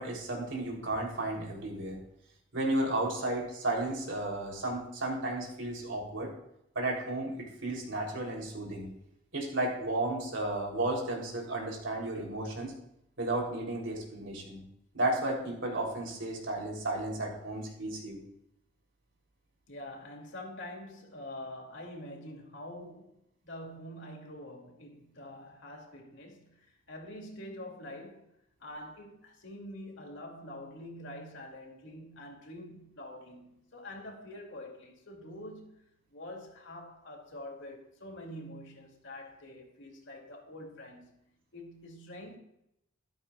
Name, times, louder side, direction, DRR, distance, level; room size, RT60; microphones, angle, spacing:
voice 1, 0.0-2.0 2.5-6.3 6.8-8.9 9.3-12.7 13.2-14.6 14.9-18.2, right 2 dB, 65° right, 3.4 m, -33 dB
voice 2, 19.7-28.3 28.6-41.2 41.5-42.4, left 1 dB, 65° left, 2.7 m, -46 dB
13.5 x 13.0 x 2.4 m
head